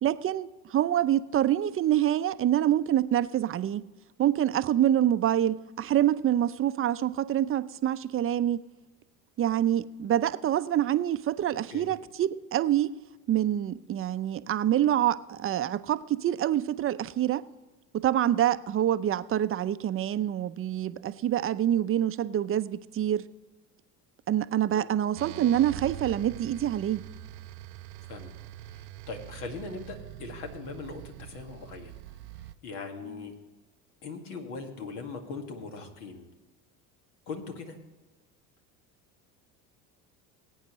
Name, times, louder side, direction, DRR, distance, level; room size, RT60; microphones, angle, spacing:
voice 1, 0.0-3.8 4.2-8.6 9.4-12.9 13.3-17.4 17.9-23.2 24.3-27.0, right 11 dB, 30° right, 14 dB, 0.5 m, -26 dB
sound 1, 25.2-32.6, right 14 dB, 80° right, 0.5 m, -44 dB
voice 2, 28.0-28.3 28.7-31.9 32.4-33.3 34.0-36.3 37.3-37.8, left 4 dB, 75° left, 4 dB, 2.0 m, -40 dB
19.0 x 8.9 x 3.1 m, 1.1 s
hypercardioid pair, 75°, 46 cm